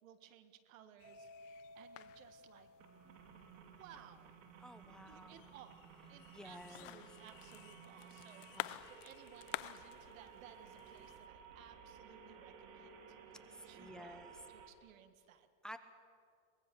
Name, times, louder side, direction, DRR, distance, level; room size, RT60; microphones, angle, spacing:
voice 1, 0.0-2.7 3.0-3.2 3.6-4.4 4.8-15.5, right 10 dB, 85° right, 11 dB, 1.8 m, -60 dB
sound 1, 1.0-11.3, left 18 dB, 70° left, 0.7 m, -51 dB
Mallet percussion, 1.0-3.5, left 1 dB, 25° right, 3.8 m, -58 dB
sound 2, 2.8-14.7, right 6 dB, 70° right, 3.2 m, -57 dB
voice 2, 4.6-5.4 6.3-7.0 8.5-8.9 13.5-14.3 15.6-15.8, equal, ahead, 10 dB, 1.1 m, -53 dB
23.5 x 20.0 x 7.0 m, 2.4 s
supercardioid pair, 125°, 39 cm